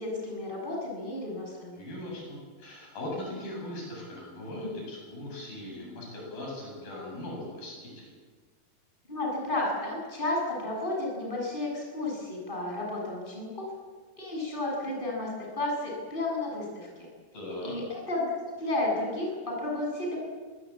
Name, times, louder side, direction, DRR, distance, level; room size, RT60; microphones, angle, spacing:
voice 1, 0.0-1.8 9.1-13.7 14.2-17.1 17.6-20.2, left 2 dB, 10° left, -2 dB, 8.0 m, -32 dB
voice 2, 1.8-8.1 17.3-17.7, left 1 dB, 70° left, -1 dB, 9.5 m, -39 dB
24.0 x 20.5 x 8.7 m, 1.4 s
omnidirectional pair, 4.2 m